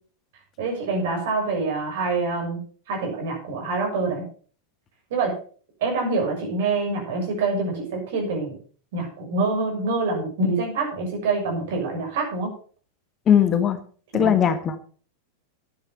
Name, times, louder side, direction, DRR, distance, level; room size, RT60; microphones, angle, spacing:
voice 1, 0.6-2.6 2.9-4.2 5.1-5.3 5.8-8.5 8.9-12.5 14.1-14.3, right 3 dB, 55° right, 2 dB, 6.3 m, -25 dB
voice 2, 13.3-13.8 14.1-14.8, left 8 dB, 25° left, 11 dB, 1.3 m, -19 dB
11.5 x 9.6 x 5.7 m, 0.43 s
figure-of-eight pair, 90°, 0 cm